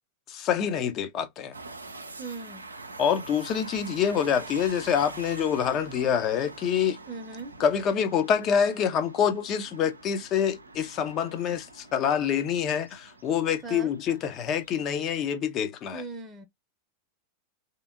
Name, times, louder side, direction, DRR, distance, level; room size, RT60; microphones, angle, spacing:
voice 1, 0.3-1.6 3.0-7.0 7.6-16.0, left 8 dB, 35° left, 0.7 m, -26 dB
sound 1, 1.5-15.0, right 3 dB, 80° right, 0.5 m, -45 dB
voice 2, 2.2-2.6 7.1-7.5 13.6-13.9 15.9-16.5, right 3 dB, 15° right, 0.8 m, -38 dB
3.3 x 2.9 x 2.5 m
figure-of-eight pair, 90°, 0 cm